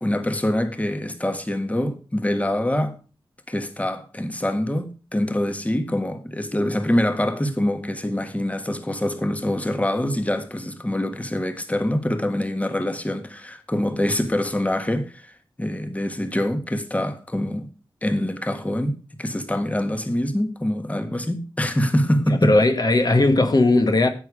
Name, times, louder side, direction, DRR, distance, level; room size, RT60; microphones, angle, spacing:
voice 1, 0.0-3.0 3.5-17.7 18.0-22.5, left 1 dB, 15° left, 1.5 m, -25 dB
voice 2, 22.3-24.1, left 2 dB, 50° left, 1.4 m, -18 dB
10.0 x 8.5 x 5.0 m
wide cardioid pair, 70°, 9 cm